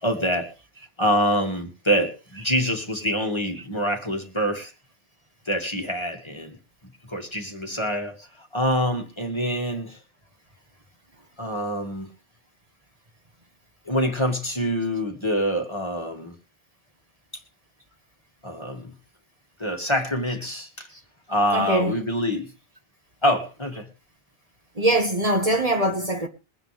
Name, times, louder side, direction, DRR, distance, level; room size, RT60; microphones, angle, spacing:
voice 1, 0.0-0.5 1.0-4.7 5.5-6.6 7.1-10.0 11.4-12.1 13.9-16.4 18.4-18.9 19.6-20.9 21.3-22.5 23.2-23.9, equal, 25° left, 2.1 m, -25 dB
voice 2, 21.5-21.9 24.8-26.3, right 1 dB, 35° right, 1.9 m, -22 dB
22.0 x 9.9 x 3.5 m
omnidirectional pair, 1.0 m